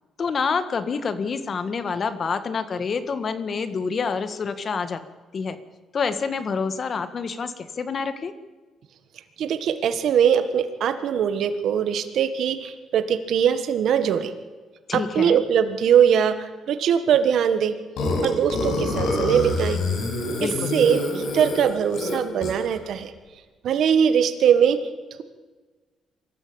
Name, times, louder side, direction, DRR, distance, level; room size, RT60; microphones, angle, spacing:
voice 1, 0.2-5.0 5.3-5.6 5.9-8.3 14.9-15.4 20.4-20.8, left 5 dB, 45° left, 11 dB, 1.8 m, -27 dB
voice 2, 9.4-14.3 14.9-17.7 18.2-19.8 20.7-23.1 23.6-24.8, right 8 dB, 70° right, 9 dB, 1.5 m, -21 dB
Burping eructation, 18.0-22.7, left 2 dB, 80° left, 5.8 m, -26 dB
24.0 x 13.5 x 8.8 m, 1.3 s
cardioid pair, 90°, 0 cm